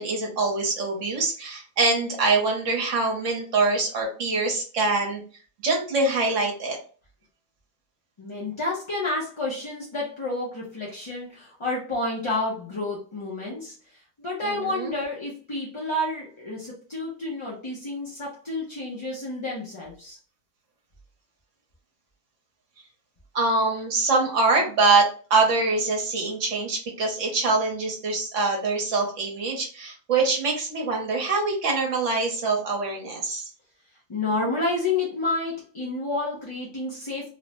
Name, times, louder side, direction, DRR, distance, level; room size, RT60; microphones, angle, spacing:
voice 1, 0.0-5.2 5.6-6.8 14.4-14.9 23.3-33.4, right 3 dB, 65° right, 1 dB, 1.1 m, -24 dB
voice 2, 8.2-13.7 14.2-20.2 34.1-37.3, left 2 dB, 35° left, -5 dB, 0.4 m, -30 dB
3.0 x 2.1 x 2.9 m, 0.39 s
omnidirectional pair, 1.5 m